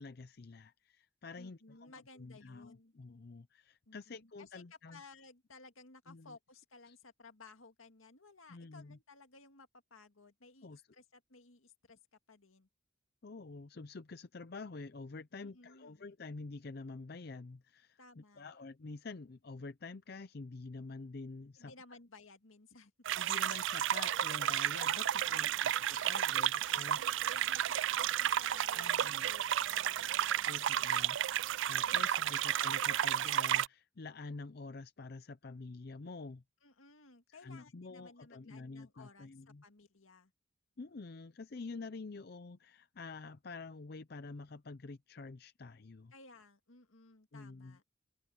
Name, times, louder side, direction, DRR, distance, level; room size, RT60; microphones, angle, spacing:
voice 1, 0.0-5.0 6.1-6.4 6.9-7.0 8.5-9.0 10.6-10.8 13.2-21.7 23.2-27.0 28.8-29.3 30.4-31.2 31.7-36.4 37.3-39.6 40.8-46.1 47.3-47.8, left 3 dB, 50° left, 0.5 m, -48 dB
voice 2, 1.4-2.9 3.9-12.0 12.3-12.7 15.4-16.0 18.0-18.4 21.6-22.9 24.9-25.7 26.3-30.7 31.9-32.3 36.6-40.3 46.1-47.8, left 3 dB, 85° left, 2.1 m, -58 dB
sound 1, 23.1-33.7, right 10 dB, 65° right, 0.4 m, -32 dB
open air
head